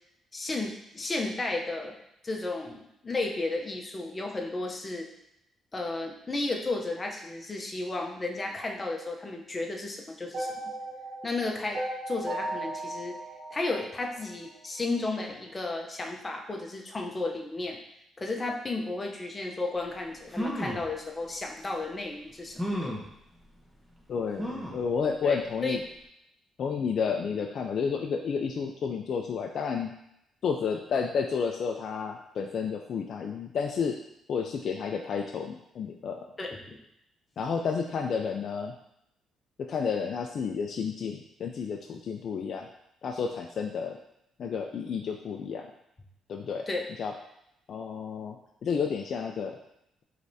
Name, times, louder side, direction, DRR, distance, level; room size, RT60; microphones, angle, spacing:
voice 1, 0.3-1.9 2.2-5.1 5.7-10.5 11.2-13.2 13.5-17.8 18.2-23.0 25.2-25.4 25.6-25.8 36.4-36.8 46.7-46.9, left 2 dB, 25° left, 1 dB, 0.7 m, -33 dB
sound 1, 10.3-14.5, right 1 dB, 55° right, 0.9 m, -37 dB
sound 2, 19.9-20.0 20.3-20.9 21.6-21.7 22.6-23.1 24.4-24.9 25.4-25.5 25.8-25.9, equal, 5° right, 0.8 m, -33 dB
voice 2, 24.1-25.8 26.6-29.9 30.4-34.0 34.3-36.2 37.4-38.7 39.7-42.7 43.0-44.0 44.4-45.7 46.3-46.7 47.0-47.1 47.7-48.4 48.6-49.6, left 6 dB, 60° left, 3 dB, 0.3 m, -31 dB
4.7 x 3.3 x 2.7 m, 0.80 s
cardioid pair, 90°, 0 cm